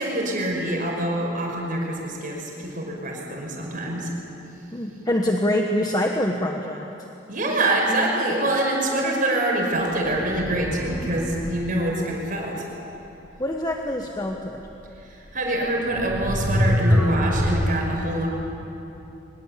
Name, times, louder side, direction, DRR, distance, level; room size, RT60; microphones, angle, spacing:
voice 1, 0.0-4.1 7.3-12.6 15.0-18.3, right 1 dB, 45° right, 0 dB, 5.4 m, -25 dB
voice 2, 4.7-6.9 13.4-14.7, left 1 dB, 20° left, 2 dB, 1.2 m, -25 dB
sound 1, 10.0-11.8 14.8-14.9 15.8-17.7, equal, ahead, 2.3 m, -24 dB
23.5 x 21.0 x 8.4 m, 2.9 s
head